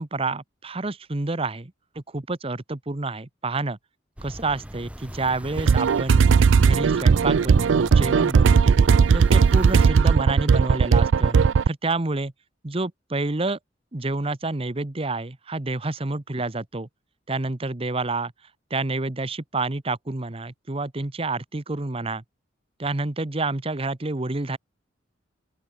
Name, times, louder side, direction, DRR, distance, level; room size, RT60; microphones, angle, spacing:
voice 1, 0.0-3.8 4.2-6.2 6.6-8.8 9.1-11.4 11.7-12.3 12.6-13.6 13.9-16.9 17.3-18.3 18.7-22.2 22.8-24.6, right 3 dB, 30° right, 1.0 m, -28 dB
sound 1, 4.2-9.9, equal, 5° right, 1.3 m, -40 dB
sound 2, 5.6-11.7, right 5 dB, 85° right, 0.4 m, -17 dB
open air
head